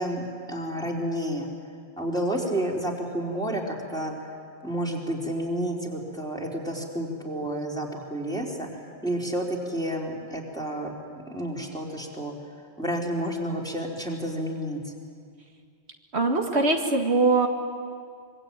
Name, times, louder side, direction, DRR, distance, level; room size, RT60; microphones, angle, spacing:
voice 1, 0.0-1.5 2.0-4.1 4.6-8.7 9.0-10.9 11.3-12.3 12.8-14.8, right 1 dB, 5° left, -2 dB, 4.2 m, -30 dB
voice 2, 16.1-17.5, right 3 dB, 75° right, 2 dB, 2.2 m, -22 dB
25.5 x 24.5 x 9.0 m, 2.1 s
omnidirectional pair, 1.1 m